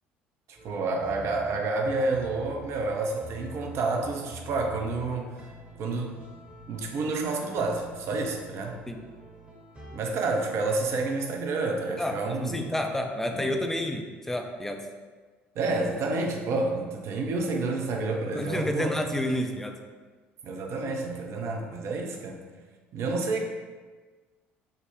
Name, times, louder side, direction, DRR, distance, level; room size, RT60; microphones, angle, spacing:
voice 1, 0.5-5.5 5.8-6.1 6.7-8.8 9.9-12.7 13.3-13.5 15.6-19.0 20.4-22.4 22.9-23.4, right 3 dB, 45° right, 2 dB, 0.5 m, -29 dB
sound 1, 0.6-10.0, equal, 20° right, 0.8 m, -47 dB
voice 2, 12.0-14.8 18.3-19.8, left 1 dB, 5° left, 4 dB, 0.4 m, -30 dB
5.0 x 2.1 x 2.7 m, 1.4 s
figure-of-eight pair, 55°, 6 cm